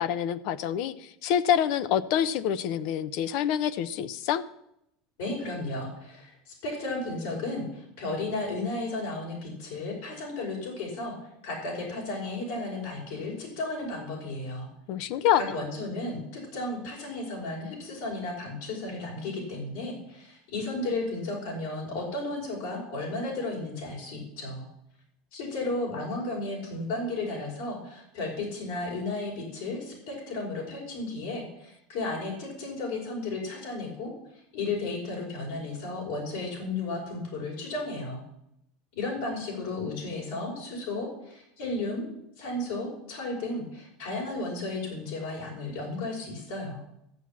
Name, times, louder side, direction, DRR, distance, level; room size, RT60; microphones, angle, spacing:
voice 1, 0.0-4.4 14.9-15.4, left 10 dB, 65° left, 14 dB, 0.8 m, -26 dB
voice 2, 5.2-11.2 11.4-14.7 15.4-24.7 25.3-34.1 34.5-38.2 38.9-42.1 42.4-46.8, left 2 dB, 80° left, -2 dB, 5.3 m, -34 dB
13.5 x 5.9 x 8.5 m, 0.77 s
supercardioid pair, 110°, 0 cm